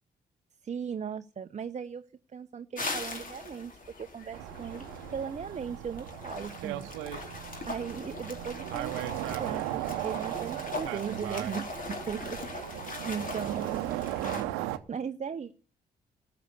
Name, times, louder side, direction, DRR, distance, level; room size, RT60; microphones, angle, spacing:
voice 1, 0.6-2.0 2.3-4.8 5.1-6.9 7.3-7.4 7.7-15.5, right 7 dB, 35° right, 9 dB, 0.7 m, -38 dB
sound 1, 2.8-14.4, left 3 dB, 40° left, 2.8 m, -41 dB
sound 2, 4.3-14.8, right 14 dB, 80° right, 0.8 m, -37 dB
13.5 x 6.9 x 6.8 m, 0.38 s
hypercardioid pair, 45°, 20 cm